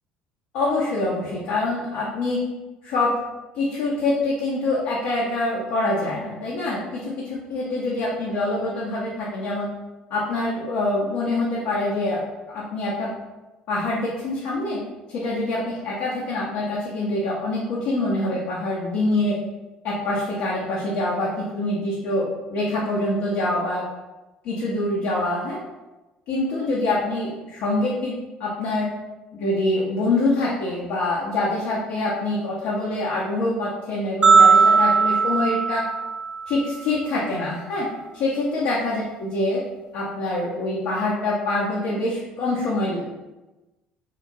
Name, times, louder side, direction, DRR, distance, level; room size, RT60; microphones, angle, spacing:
voice 1, 0.5-2.4 2.8-3.1 3.5-9.7 10.1-12.2 12.5-13.1 13.7-14.8 15.1-19.4 19.8-23.8 24.4-25.6 26.3-28.1 28.4-28.9 29.3-35.8 36.5-37.9 38.1-39.6 39.9-43.1, left 2 dB, 65° left, -4 dB, 0.5 m, -25 dB
sound 1, 34.2-36.6, right 5 dB, 30° right, 0.4 m, -17 dB
2.8 x 2.1 x 2.6 m, 1.1 s
hypercardioid pair, 60°, 4 cm